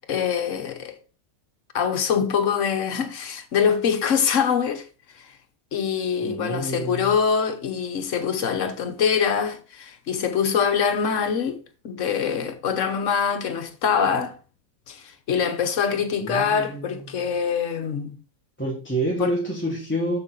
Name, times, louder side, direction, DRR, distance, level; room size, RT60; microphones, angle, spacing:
voice 1, 0.1-1.0 1.7-4.9 5.2-5.3 5.7-14.4 14.9-18.1 19.2-19.3, left 7 dB, 60° left, 1.3 m, -24 dB
voice 2, 6.2-7.1 16.2-17.3 18.6-20.2, right 1 dB, 10° left, 1.4 m, -28 dB
7.0 x 6.8 x 3.9 m
omnidirectional pair, 1.5 m